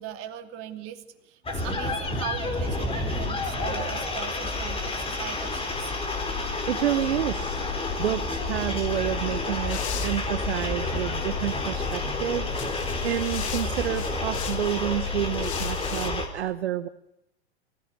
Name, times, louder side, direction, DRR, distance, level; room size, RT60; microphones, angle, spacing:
voice 1, 0.0-5.9, right 11 dB, 40° right, 7 dB, 2.6 m, -39 dB
sound 1, 1.4-16.3, left 3 dB, 15° left, 4.4 m, -29 dB
voice 2, 6.7-7.6 8.0-16.9, right 11 dB, 70° right, 11 dB, 1.1 m, -29 dB
sound 2, 9.7-10.6 11.4-12.0 12.4-14.8 15.3-16.1, left 9 dB, 75° left, 1.6 m, -39 dB
24.0 x 16.5 x 9.5 m, 0.84 s
hypercardioid pair, 100°, 34 cm